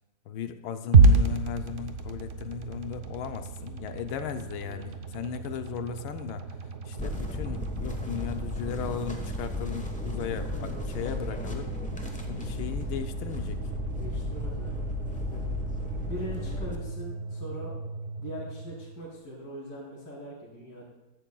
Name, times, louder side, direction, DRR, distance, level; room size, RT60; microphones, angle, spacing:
voice 1, 0.3-6.4 6.8-11.7 12.3-13.6, left 8 dB, 75° left, 8 dB, 1.4 m, -36 dB
sound 1, 0.9-19.2, right 3 dB, 80° right, 0.6 m, -30 dB
sound 2, 7.0-16.8, left 2 dB, 10° left, 0.3 m, -35 dB
voice 2, 10.4-10.8 13.9-14.8 15.3-15.4 16.0-17.7 18.2-20.9, equal, 50° left, -7 dB, 3.3 m, -41 dB
14.5 x 11.5 x 2.3 m, 1.0 s
omnidirectional pair, 2.4 m